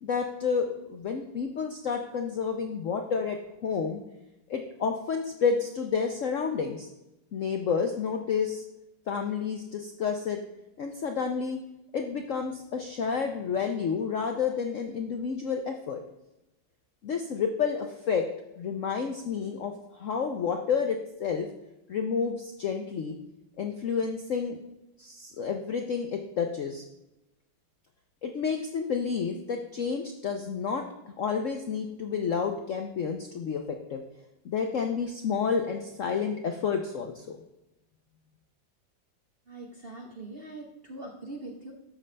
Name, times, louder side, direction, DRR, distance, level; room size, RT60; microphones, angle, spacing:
voice 1, 0.0-4.0 4.5-6.9 7.3-8.6 9.1-10.4 10.8-11.6 11.9-16.0 17.0-18.3 18.6-21.5 21.9-23.2 23.6-24.6 25.0-26.8 28.2-30.8 31.2-34.0 34.4-37.4, left 6 dB, 70° left, 4 dB, 0.7 m, -30 dB
voice 2, 39.5-41.7, right 2 dB, 45° right, 1 dB, 0.7 m, -42 dB
12.5 x 5.3 x 3.3 m, 0.92 s
omnidirectional pair, 2.1 m